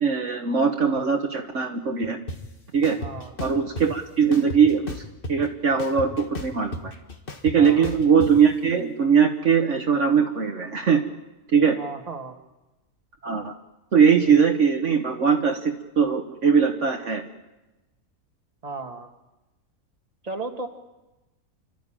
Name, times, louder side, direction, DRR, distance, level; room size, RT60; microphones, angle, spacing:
voice 1, 0.0-2.2 2.7-3.0 3.4-5.0 5.3-6.8 7.4-11.0 11.5-11.8 13.2-13.5 13.9-17.2, right 6 dB, 55° right, 5 dB, 1.5 m, -20 dB
sound 1, 2.3-2.4 2.8-3.9 4.3-5.5 5.8-8.3, left 2 dB, 40° left, 1.8 m, -34 dB
voice 2, 3.0-3.3 7.6-7.9 11.8-12.4 18.6-19.1 20.2-20.7, right 3 dB, 25° right, 4 dB, 1.8 m, -34 dB
29.5 x 12.5 x 8.9 m, 1.0 s
omnidirectional pair, 1.5 m